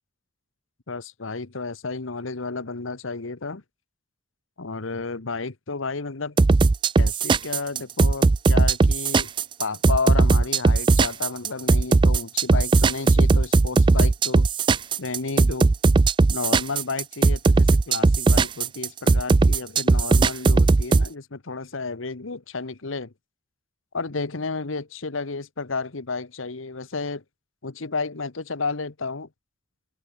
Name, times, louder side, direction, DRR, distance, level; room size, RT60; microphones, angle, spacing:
voice 1, 0.9-3.6 4.6-6.4 7.0-9.3 9.6-14.5 15.0-15.7 16.3-23.1 23.9-27.2 27.6-29.3, left 4 dB, 85° left, 1.3 m, -32 dB
sound 1, 6.4-21.1, right 3 dB, 25° right, 0.3 m, -18 dB
head